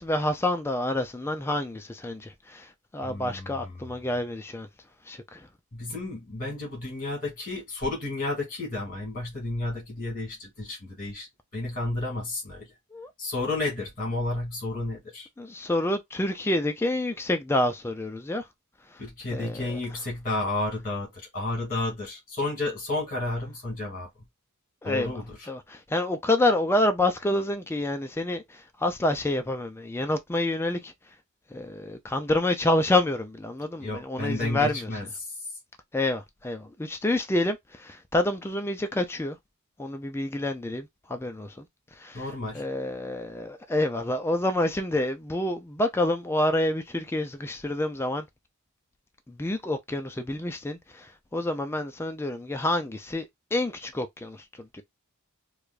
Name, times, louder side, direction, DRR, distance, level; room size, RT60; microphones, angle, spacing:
voice 1, 0.0-4.7 5.1-5.5 12.9-13.1 15.4-18.5 18.9-19.0 19.3-19.8 24.8-30.9 31.5-34.9 35.9-39.4 39.8-41.6 42.0-42.3 42.5-48.3 49.3-54.8, left 1 dB, 10° left, 0.4 m, -28 dB
voice 2, 3.0-3.9 5.7-12.7 13.2-15.3 19.0-24.1 24.8-25.5 33.8-35.3 42.1-42.6, left 2 dB, 40° left, 2.2 m, -32 dB
4.8 x 2.3 x 2.4 m
head